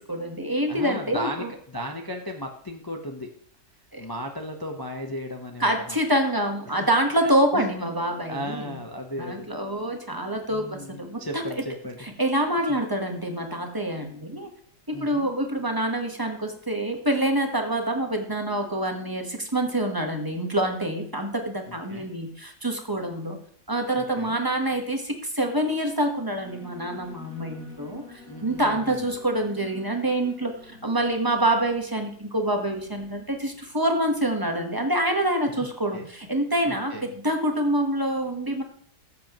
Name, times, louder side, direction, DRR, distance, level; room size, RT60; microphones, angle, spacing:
voice 1, 0.0-1.5 3.9-4.1 5.6-8.8 9.2-11.4 12.0-14.5 14.9-23.4 23.7-28.0 28.4-38.6, right 1 dB, 15° right, 3 dB, 1.1 m, -26 dB
voice 2, 0.7-3.3 4.0-6.0 7.2-7.7 8.3-9.5 10.5-12.0 12.7-12.8 14.9-15.3 21.7-22.1 23.9-24.4 28.3-29.1 35.6-36.0 36.7-37.0, equal, 20° left, 2 dB, 0.6 m, -36 dB
Alarm, 26.4-33.5, left 3 dB, 70° left, 5.5 m, -48 dB
14.5 x 7.5 x 3.0 m, 0.62 s
omnidirectional pair, 1.8 m